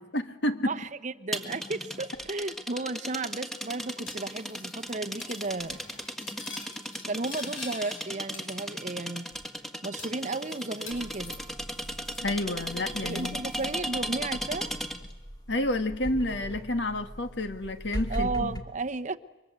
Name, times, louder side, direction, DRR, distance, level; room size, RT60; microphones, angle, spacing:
voice 1, 0.0-0.8 12.2-13.4 15.5-18.5, left 1 dB, 60° left, 8 dB, 1.9 m, -30 dB
voice 2, 0.7-5.8 7.1-9.3 9.8-11.4 13.0-14.7 18.1-19.2, right 3 dB, 40° right, 10 dB, 0.9 m, -34 dB
sound 1, 1.3-15.1, equal, ahead, 1.8 m, -36 dB
Cutlery silverware, 4.1-4.9 5.2-5.5 5.7-8.0 8.3-9.0 9.3-9.4 10.0-12.3 12.6-13.7, left 4 dB, 90° left, 6.9 m, -46 dB
sound 2, 10.9-18.6, equal, 20° left, 2.4 m, -40 dB
29.5 x 24.5 x 8.1 m, 1.1 s
head